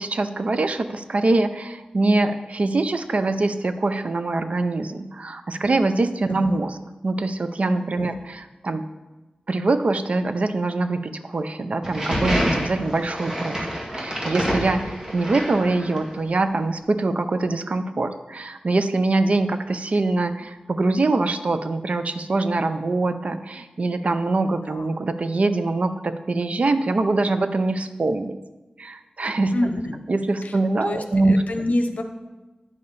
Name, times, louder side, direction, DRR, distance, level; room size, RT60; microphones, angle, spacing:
voice 1, 0.0-6.8 7.0-8.8 9.5-28.4 28.8-29.5 30.1-31.4, right 2 dB, 55° right, 10 dB, 0.5 m, -23 dB
sound 1, 11.8-16.2, equal, 25° right, 1.9 m, -27 dB
voice 2, 29.5-30.0 30.4-32.0, left 1 dB, 65° left, 6 dB, 0.8 m, -28 dB
9.6 x 6.7 x 4.1 m, 1.2 s
wide cardioid pair, 100°, 3 cm